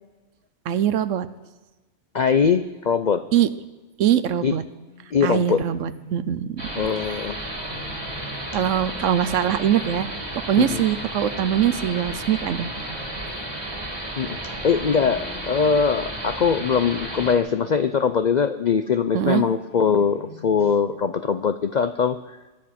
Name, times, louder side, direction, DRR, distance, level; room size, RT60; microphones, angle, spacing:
voice 1, 0.7-1.3 3.3-3.5 4.0-4.6 5.2-6.6 8.5-10.1 10.3-12.7 19.1-19.4, right 10 dB, 70° right, 14 dB, 1.0 m, -22 dB
voice 2, 2.1-3.2 4.4-4.6 5.1-5.6 6.8-7.4 10.6-10.8 14.2-22.4, left 6 dB, 65° left, 10 dB, 0.4 m, -22 dB
sound 1, 4.8-16.4 17.2-18.5 19.4-21.0, equal, 30° left, 1.8 m, -46 dB
sound 2, 6.6-17.4, right 1 dB, 15° right, 2.2 m, -33 dB
22.5 x 10.0 x 5.9 m, 1.1 s
omnidirectional pair, 1.4 m